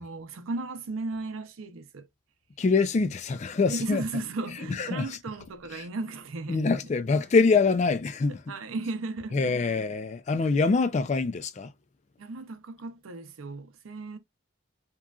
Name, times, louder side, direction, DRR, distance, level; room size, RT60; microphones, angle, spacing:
voice 1, 0.0-2.1 3.7-6.6 8.5-9.6 10.5-10.6 12.2-14.2, right 3 dB, 85° right, 0.6 m, -35 dB
voice 2, 2.6-4.0 4.7-5.2 5.7-5.9 6.5-8.4 9.3-11.7, left 4 dB, 35° left, 0.3 m, -25 dB
3.0 x 2.3 x 2.3 m
head